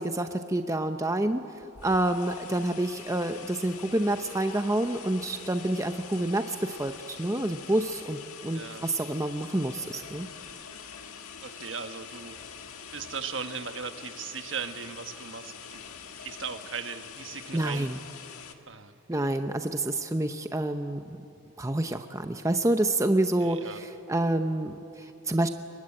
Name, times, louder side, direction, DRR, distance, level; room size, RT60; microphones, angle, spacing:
voice 1, 0.0-1.4 1.8-10.3 17.5-18.0 19.1-21.2 21.6-25.5, right 1 dB, 15° right, 7 dB, 0.7 m, -28 dB
sound 1, 1.6-18.5, left 6 dB, 90° left, 1.7 m, -45 dB
voice 2, 8.5-8.9 11.4-12.4 12.9-15.8 16.2-17.9 18.7-19.3 23.4-23.8, right 6 dB, 60° right, 8 dB, 1.3 m, -38 dB
24.0 x 21.5 x 9.8 m, 2.7 s
head